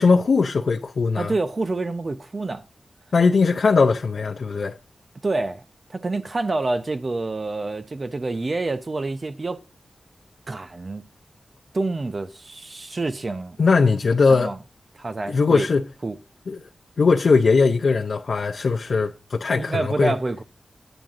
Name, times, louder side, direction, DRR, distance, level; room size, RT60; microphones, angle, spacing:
voice 1, 0.0-1.3 3.1-4.7 13.6-14.5 15.3-15.9 16.5-16.6 17.0-20.1, left 4 dB, 75° left, 0.6 m, -19 dB
voice 2, 1.2-2.6 5.2-5.6 5.9-9.6 10.5-11.1 11.7-13.6 14.3-14.6 14.9-15.7 16.0-16.2 19.5-20.4, right 2 dB, 45° right, 0.8 m, -27 dB
9.1 x 9.0 x 3.7 m
wide cardioid pair, 90°, 0 cm